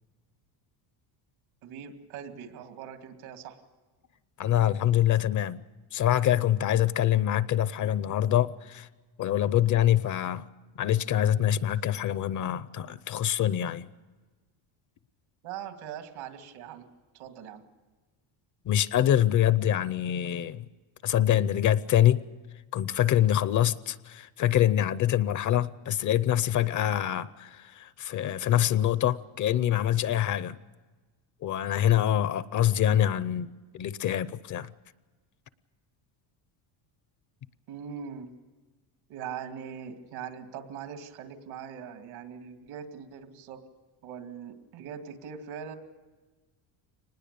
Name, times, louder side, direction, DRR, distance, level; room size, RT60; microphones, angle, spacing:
voice 1, 1.6-3.6 15.4-16.9 17.1-17.6 37.7-38.3 39.1-43.6 44.0-45.8, right 8 dB, 75° right, 6 dB, 2.5 m, -41 dB
voice 2, 4.4-5.6 5.9-8.9 9.2-10.4 10.8-13.8 18.7-20.7 21.0-22.2 22.7-30.6 31.4-34.7, left 11 dB, 40° left, 17 dB, 0.6 m, -25 dB
24.5 x 20.0 x 6.8 m, 1.3 s
cardioid pair, 150°, 47 cm